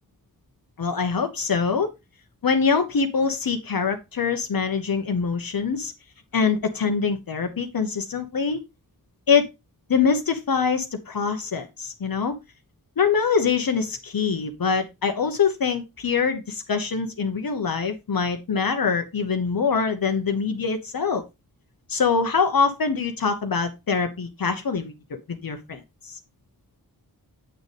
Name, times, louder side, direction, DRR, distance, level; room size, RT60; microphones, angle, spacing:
voice 1, 0.8-1.9 2.4-5.9 6.3-8.6 9.3-9.5 9.9-12.3 13.0-21.2 21.9-26.2, left 5 dB, 65° left, 6 dB, 1.0 m, -24 dB
7.8 x 6.6 x 3.4 m, 0.24 s
wide cardioid pair, 70°, 37 cm